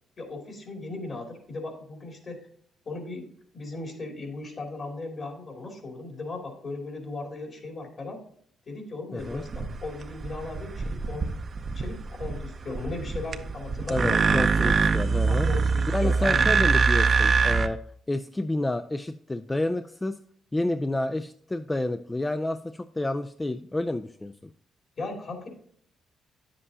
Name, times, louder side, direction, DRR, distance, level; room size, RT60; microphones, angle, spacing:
voice 1, 0.2-2.4 2.8-8.2 8.7-11.3 11.7-14.6 15.3-16.5 25.0-25.5, left 3 dB, 45° left, 2 dB, 2.7 m, -37 dB
voice 2, 9.1-9.4 13.9-15.5 15.9-17.8 18.1-20.2 20.5-24.5, left 2 dB, 15° left, 10 dB, 0.3 m, -29 dB
sound 1, 9.2-17.7, right 5 dB, 40° right, 0.6 m, -24 dB
9.8 x 7.6 x 2.7 m, 0.63 s
cardioid pair, 90°, 0 cm